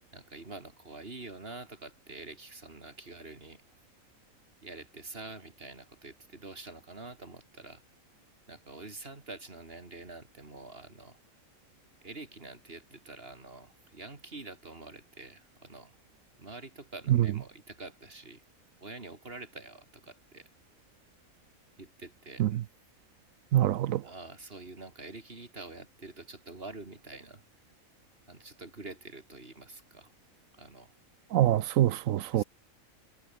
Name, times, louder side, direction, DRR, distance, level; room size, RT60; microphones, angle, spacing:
voice 1, 0.1-3.6 4.6-7.8 8.5-11.2 12.0-16.0 16.4-18.4 18.8-20.5 21.8-22.6 24.0-27.4 28.3-30.1 30.5-30.9 32.3-32.4, right 2 dB, 45° right, 3.5 m, -46 dB
voice 2, 23.5-24.0 31.3-32.4, right 13 dB, 75° right, 1.0 m, -25 dB
omnidirectional pair, 1.4 m